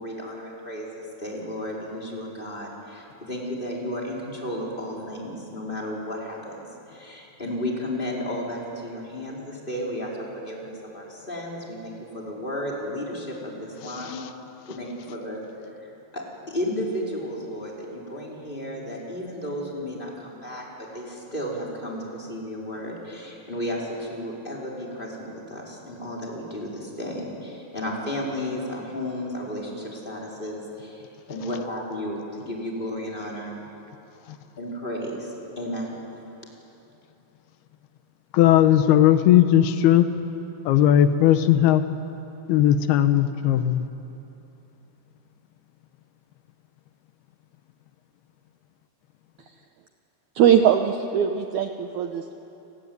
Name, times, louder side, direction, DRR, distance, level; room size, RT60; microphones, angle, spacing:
voice 1, 0.0-14.3 14.7-15.4 16.1-33.5 34.6-35.9, left 1 dB, 10° left, 4.6 m, -33 dB
voice 2, 38.3-40.1 40.7-41.8 42.5-43.9, left 11 dB, 85° left, 3.0 m, -18 dB
voice 3, 50.4-52.3, right 9 dB, 70° right, 1.9 m, -20 dB
29.5 x 19.5 x 9.6 m
omnidirectional pair, 4.4 m